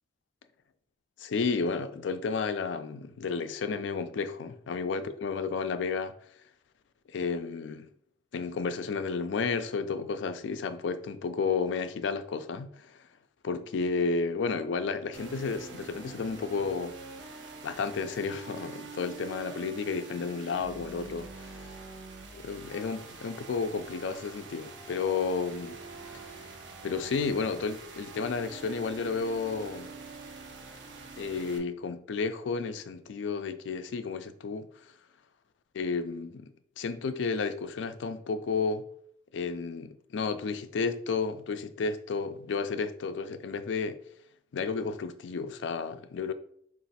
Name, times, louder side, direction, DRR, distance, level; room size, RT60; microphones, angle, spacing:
voice 1, 1.2-6.1 7.1-7.9 8.3-13.0 13.4-16.9 17.6-21.7 22.3-25.8 26.1-26.2 26.8-29.9 31.2-34.7 35.7-36.5 36.8-38.8 39.3-44.0 44.5-46.3, left 4 dB, 90° left, 0.4 m, -32 dB
sound 1, 15.1-31.6, right 4 dB, 85° right, 0.7 m, -45 dB
3.9 x 2.5 x 4.1 m
head